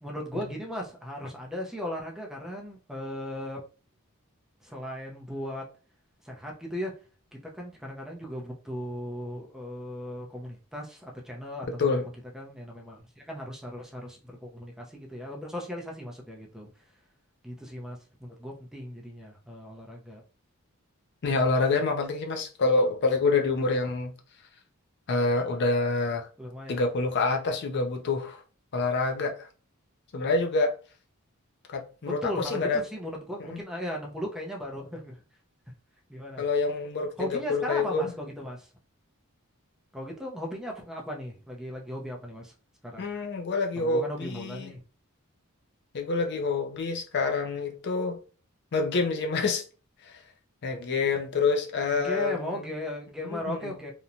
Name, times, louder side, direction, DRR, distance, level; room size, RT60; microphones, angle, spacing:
voice 1, 0.0-3.6 4.6-5.6 6.2-7.0 7.4-16.7 17.4-20.2 26.4-26.8 32.0-35.2 36.1-36.4 37.2-38.7 39.9-42.5 42.8-43.1 43.7-44.8 51.9-53.9, equal, ahead, 0.5 m, -37 dB
voice 2, 21.2-24.1 25.1-26.3 26.7-28.4 28.7-29.5 30.1-30.7 31.7-32.8 33.5-33.6 36.4-38.1 43.0-44.7 45.9-48.2 48.7-49.6 50.6-52.6 53.2-53.7, left 3 dB, 55° left, 0.5 m, -27 dB
2.9 x 2.1 x 2.5 m
head